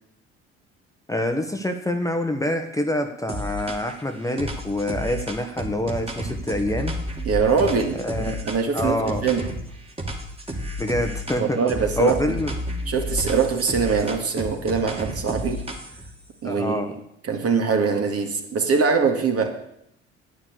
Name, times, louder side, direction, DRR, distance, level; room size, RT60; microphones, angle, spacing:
voice 1, 1.1-6.9 8.0-8.4 8.7-9.3 10.8-11.6 12.0-12.5 16.4-16.9, left 1 dB, 10° left, 6 dB, 1.3 m, -26 dB
sound 1, 3.3-4.0 4.4-9.6 10.0-11.4 11.7-16.1, equal, 15° right, 2.6 m, -31 dB
voice 2, 7.2-9.5 11.4-12.4 12.9-15.7 16.4-16.8 17.2-19.6, right 5 dB, 40° right, 4 dB, 2.2 m, -23 dB
11.0 x 9.0 x 6.7 m, 0.77 s
hypercardioid pair, 55°, 35 cm